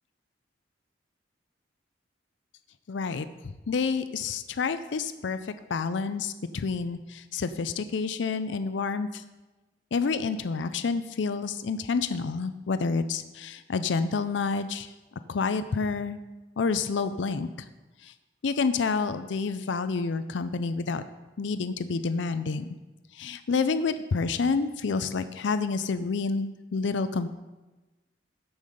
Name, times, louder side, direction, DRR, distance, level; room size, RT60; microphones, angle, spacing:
voice 1, 2.9-3.3 3.7-5.4 5.7-9.2 9.9-14.9 15.3-16.2 16.6-17.5 18.0-18.1 18.4-21.0 21.4-22.7 23.2-27.3, left 4 dB, 80° left, 12 dB, 0.5 m, -28 dB
14.0 x 5.5 x 5.1 m, 1.1 s
head